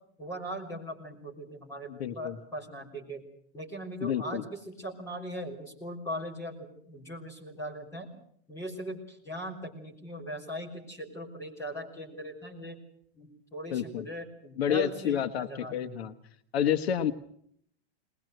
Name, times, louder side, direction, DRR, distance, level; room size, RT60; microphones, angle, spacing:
voice 1, 0.2-3.2 3.5-8.1 8.5-12.8 13.2-16.1, right 1 dB, 10° left, -2 dB, 3.6 m, -40 dB
voice 2, 1.9-2.4 4.0-4.4 13.7-14.0 14.6-16.1 16.5-17.1, left 9 dB, 70° left, 10 dB, 1.2 m, -29 dB
21.0 x 20.5 x 7.8 m, 0.67 s
supercardioid pair, 175°, 32 cm